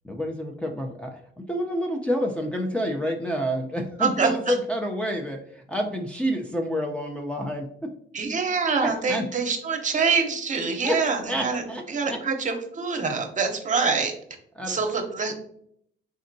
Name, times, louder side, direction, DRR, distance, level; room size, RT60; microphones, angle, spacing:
voice 1, 0.0-7.9 8.8-9.3 10.8-12.2 14.6-14.9, equal, 5° left, 1 dB, 0.5 m, -29 dB
voice 2, 4.0-4.5 8.1-11.6 11.9-14.1 14.6-15.4, right 5 dB, 40° right, 4 dB, 0.8 m, -25 dB
4.1 x 3.7 x 2.6 m, 0.67 s
cardioid pair, 90°, 20 cm